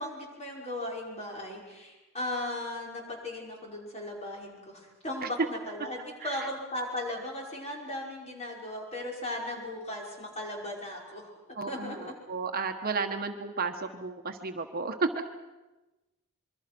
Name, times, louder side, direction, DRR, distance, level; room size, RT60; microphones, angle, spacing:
voice 1, 0.0-11.3 11.7-12.1, left 1 dB, 30° left, -1 dB, 5.6 m, -37 dB
voice 2, 11.5-15.2, right 4 dB, 45° right, 5 dB, 1.4 m, -33 dB
26.5 x 23.0 x 6.2 m, 1.1 s
head